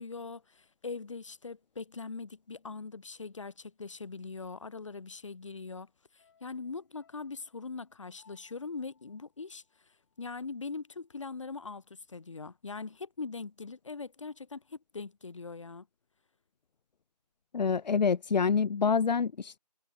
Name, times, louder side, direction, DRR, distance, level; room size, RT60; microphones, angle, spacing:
voice 1, 0.0-15.9, left 4 dB, 50° left, 1.5 m, -42 dB
sound 1, 6.2-10.6 10.9-11.0, left 6 dB, 30° left, 6.4 m, -69 dB
voice 2, 17.5-19.6, left 5 dB, 90° left, 0.4 m, -27 dB
figure-of-eight pair, 160°, 21 cm